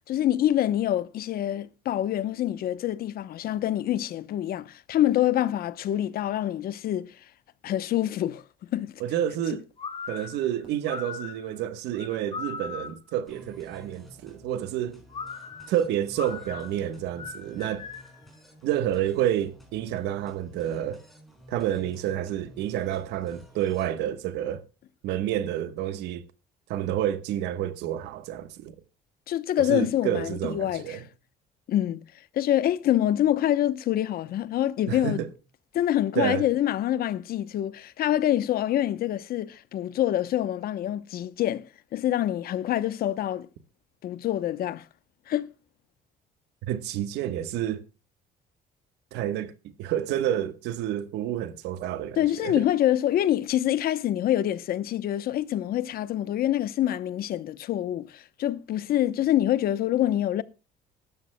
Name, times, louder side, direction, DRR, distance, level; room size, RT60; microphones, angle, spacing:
voice 1, 0.1-7.1 7.6-8.4 8.7-8.9 29.3-31.0 31.7-32.0 32.3-35.2 35.7-41.6 41.9-43.5 44.0-44.8 45.3-45.5 52.2-60.4, left 12 dB, 65° left, 0.8 m, -26 dB
voice 2, 9.0-9.6 10.1-15.0 15.7-17.9 18.6-21.0 21.5-24.6 25.0-26.2 26.7-28.7 29.6-31.0 34.9-35.3 36.1-36.4 46.7-47.8 49.1-49.5 49.8-52.6, right 11 dB, 85° right, 1.3 m, -29 dB
sound 1, 9.3-9.5 10.6-10.8 12.0-12.1 13.4-13.6, right 3 dB, 30° right, 6.7 m, -54 dB
sound 2, 9.8-13.1 15.1-18.2, left 5 dB, 35° left, 2.6 m, -39 dB
sound 3, 13.3-23.9, left 1 dB, ahead, 4.6 m, -52 dB
18.0 x 12.5 x 2.2 m
cardioid pair, 110°, 17 cm